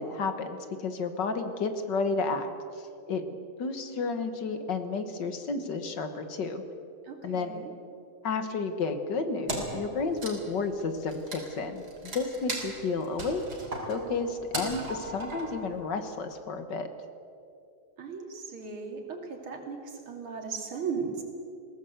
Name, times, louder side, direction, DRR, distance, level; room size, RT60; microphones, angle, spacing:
voice 1, 0.0-2.5 2.7-3.2 3.6-6.6 7.2-7.6 8.2-13.4 13.9-16.9, left 4 dB, 60° left, 8 dB, 1.9 m, -31 dB
voice 2, 7.0-7.7 18.0-21.2, right 5 dB, 80° right, 3 dB, 3.5 m, -37 dB
Wood, 9.5-16.2, right 2 dB, 50° right, 3.6 m, -38 dB
21.0 x 17.5 x 8.0 m, 2.6 s
omnidirectional pair, 2.3 m